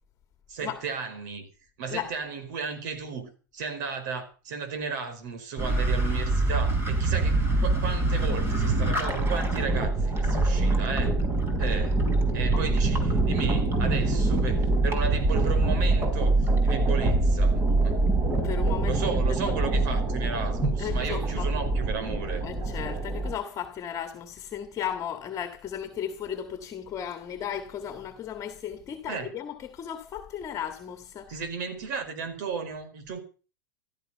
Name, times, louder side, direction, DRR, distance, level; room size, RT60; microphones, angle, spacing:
voice 1, 0.5-1.5 1.8-11.2 11.6-12.0 12.3-18.0 18.9-22.5 29.1-29.3 31.3-33.2, right 6 dB, 60° right, 4.7 m, -34 dB
sound 1, 5.6-23.3, right 2 dB, 20° right, 4.7 m, -24 dB
voice 2, 18.4-19.7 20.8-21.5 22.4-31.5, left 9 dB, 30° left, 1.8 m, -35 dB
15.5 x 13.0 x 5.7 m
hypercardioid pair, 105°, 11 cm